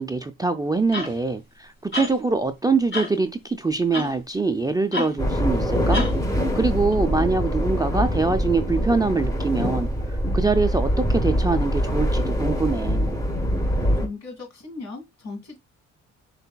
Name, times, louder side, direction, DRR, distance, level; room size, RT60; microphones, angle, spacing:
voice 1, 0.0-6.0 6.5-9.9 10.3-13.2, right 3 dB, 15° right, 0.4 m, -24 dB
sound 1, 0.9-1.2 1.9-2.2 2.9-3.1 3.9-4.1 4.9-5.1 5.9-6.2 6.9-7.0, left 3 dB, 40° left, 2.9 m, -28 dB
sound 2, 5.2-14.1, equal, 10° left, 1.1 m, -24 dB
voice 2, 14.0-15.6, left 3 dB, 65° left, 2.3 m, -37 dB
5.5 x 3.4 x 2.2 m
cardioid pair, 90°, 30 cm